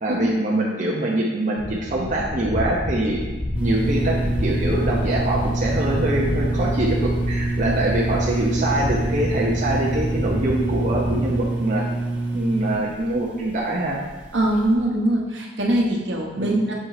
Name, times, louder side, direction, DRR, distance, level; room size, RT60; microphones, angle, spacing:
voice 1, 0.0-3.2 3.6-11.8 12.3-14.0 16.3-16.6, right 1 dB, 40° right, -4 dB, 0.7 m, -24 dB
sound 1, 1.6-11.4, left 1 dB, 15° left, 0.4 m, -29 dB
sound 2, 3.5-14.7, right 2 dB, 10° right, 0.9 m, -26 dB
voice 2, 14.3-16.7, right 1 dB, 70° right, -1 dB, 1.1 m, -22 dB
6.4 x 3.8 x 4.9 m, 1.2 s
head